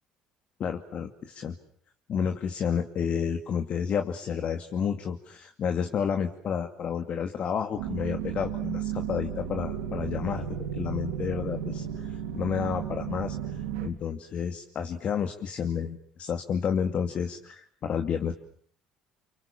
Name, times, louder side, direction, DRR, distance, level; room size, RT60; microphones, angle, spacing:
voice 1, 0.6-1.6 2.1-10.5 10.7-13.4 13.8-18.3, left 7 dB, 50° left, 6 dB, 2.4 m, -30 dB
sound 1, 7.8-13.9, right 8 dB, 85° right, 3.7 m, -34 dB
29.5 x 25.5 x 7.2 m, 0.63 s
hypercardioid pair, 65°, 3 cm